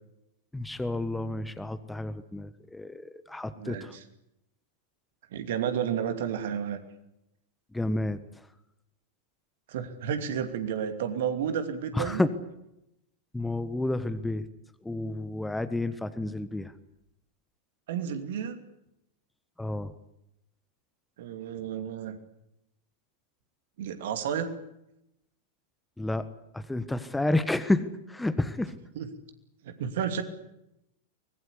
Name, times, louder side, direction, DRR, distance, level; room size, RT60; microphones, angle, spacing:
voice 1, 0.5-3.9 7.7-8.2 11.9-12.3 13.3-14.4 14.8-16.7 19.6-19.9 26.0-26.2 26.5-27.8 28.1-28.7, left 2 dB, 5° left, 13 dB, 1.4 m, -30 dB
voice 2, 3.6-4.0 5.3-6.8 9.7-12.2 17.9-18.6 21.2-22.2 23.8-24.5 28.9-29.1 29.6-30.2, right 8 dB, 55° right, 9 dB, 2.7 m, -31 dB
24.0 x 21.0 x 8.5 m, 0.85 s
figure-of-eight pair, 90°, 0 cm